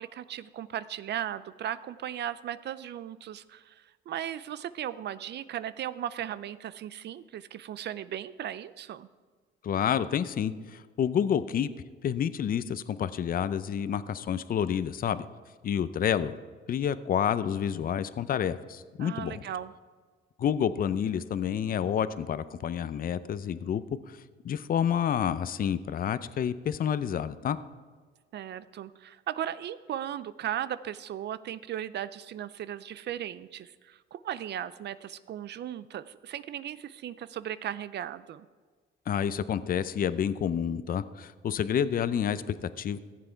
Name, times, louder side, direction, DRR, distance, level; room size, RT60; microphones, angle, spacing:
voice 1, 0.0-9.1 19.0-19.7 28.3-38.5, right 11 dB, 60° right, 15 dB, 0.4 m, -37 dB
voice 2, 9.6-11.7 12.0-15.3 15.6-16.3 16.7-19.4 20.4-24.2 24.4-27.6 39.1-43.0, left 8 dB, 45° left, 14 dB, 0.5 m, -29 dB
15.0 x 7.6 x 4.6 m, 1.5 s
cardioid pair, 90°, 20 cm